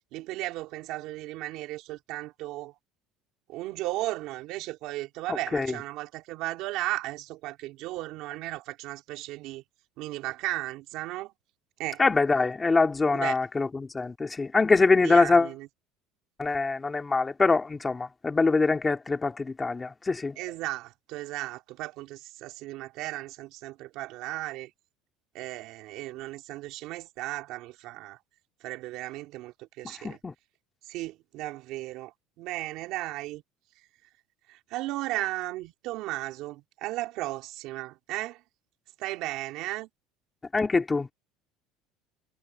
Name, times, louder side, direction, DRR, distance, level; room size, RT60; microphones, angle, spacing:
voice 1, 0.1-2.7 3.5-9.6 10.0-11.3 11.8-12.0 13.1-13.4 15.0-15.7 20.4-24.7 25.3-28.2 28.6-30.2 30.9-33.4 34.5-38.4 39.0-39.9, right 17 dB, 55° right, 3.3 m, -35 dB
voice 2, 5.3-5.7 12.0-15.5 16.4-20.4 30.0-30.3 40.5-41.1, left 3 dB, 15° left, 3.4 m, -24 dB
cardioid pair, 165°, 0 cm